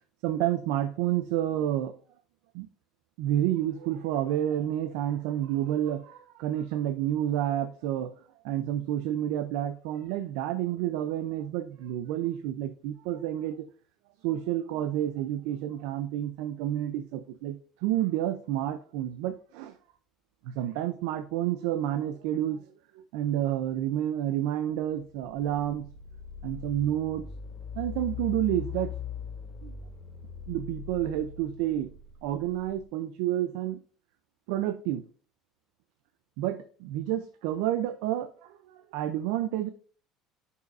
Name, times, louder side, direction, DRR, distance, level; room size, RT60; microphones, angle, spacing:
voice 1, 0.2-1.9 2.5-2.7 3.2-8.1 8.4-13.7 14.2-17.6 17.8-19.7 20.4-22.6 23.0-25.9 26.4-27.2 27.8-28.9 29.6-29.7 30.5-31.9 32.2-33.8 34.5-35.0 36.4-38.6 38.9-39.7, right 12 dB, 80° right, 9 dB, 0.6 m, -29 dB
sound 1, 25.1-32.8, left 8 dB, 35° left, 2.6 m, -40 dB
10.5 x 5.6 x 2.6 m, 0.41 s
cardioid pair, 120°, 0 cm